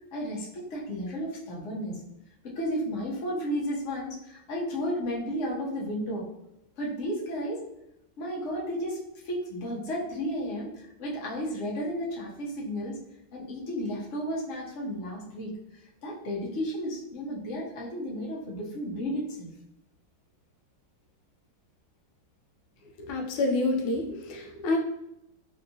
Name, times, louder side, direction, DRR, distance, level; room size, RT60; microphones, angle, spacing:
voice 1, 0.1-2.0 2.4-6.2 6.8-7.6 8.2-13.0 13.3-15.5 16.0-19.5, equal, 55° left, -4 dB, 0.8 m, -33 dB
voice 2, 23.0-24.8, left 2 dB, 80° left, 2 dB, 1.4 m, -28 dB
3.4 x 2.7 x 2.7 m, 0.83 s
omnidirectional pair, 2.3 m